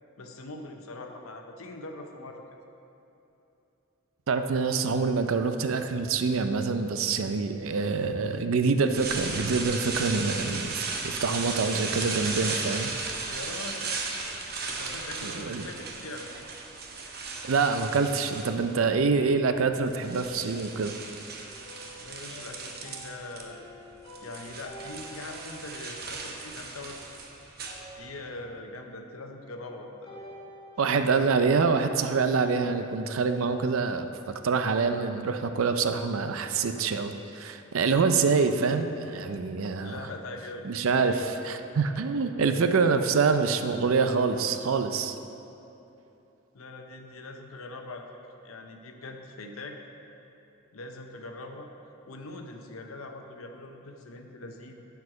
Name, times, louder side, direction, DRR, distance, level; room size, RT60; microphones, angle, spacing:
voice 1, 0.2-2.4 13.3-13.9 14.7-16.4 22.0-23.7 24.2-27.0 28.0-30.2 30.8-31.2 39.8-40.7 46.5-48.1 48.4-49.8 50.7-51.7 52.1-54.8, left 2 dB, 85° left, 4 dB, 0.8 m, -42 dB
voice 2, 4.3-12.9 15.2-15.7 17.5-20.9 30.8-40.0 40.6-45.2, right 4 dB, 75° right, 8 dB, 0.5 m, -26 dB
sound 1, 8.9-18.9 19.6-23.4 23.7-28.3, right 4 dB, 50° right, 0.8 m, -36 dB
sound 2, 21.4-27.3 27.6-28.8 30.0-32.2, equal, 25° left, 1.9 m, -50 dB
11.0 x 4.6 x 4.8 m, 2.9 s
head